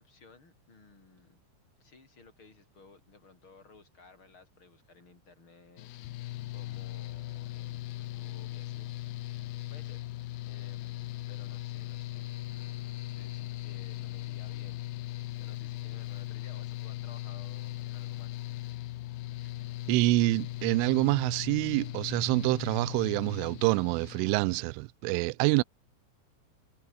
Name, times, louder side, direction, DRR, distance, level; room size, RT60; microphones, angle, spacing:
voice 1, 0.0-1.4 1.8-10.0 10.4-18.6, left 4 dB, 25° left, 6.0 m, -57 dB
Mechanical fan, 5.8-24.3, left 16 dB, 75° left, 2.4 m, -39 dB
voice 2, 19.9-25.6, right 25 dB, 85° right, 3.0 m, -26 dB
omnidirectional pair, 5.6 m